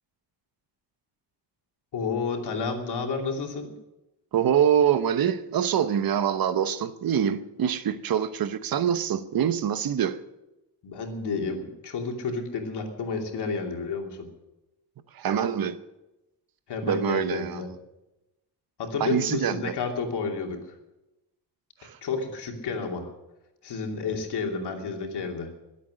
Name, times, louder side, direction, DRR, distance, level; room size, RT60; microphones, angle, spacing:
voice 1, 1.9-3.7 10.8-14.3 16.7-17.7 18.8-20.7 22.0-23.1 23.6-25.5, left 4 dB, 70° left, 1 dB, 2.9 m, -31 dB
voice 2, 4.3-10.2 15.1-15.8 16.9-17.6 19.0-19.7 21.8-22.0, right 9 dB, 55° right, 12 dB, 0.9 m, -25 dB
22.5 x 8.4 x 6.4 m, 0.97 s
wide cardioid pair, 165°, 41 cm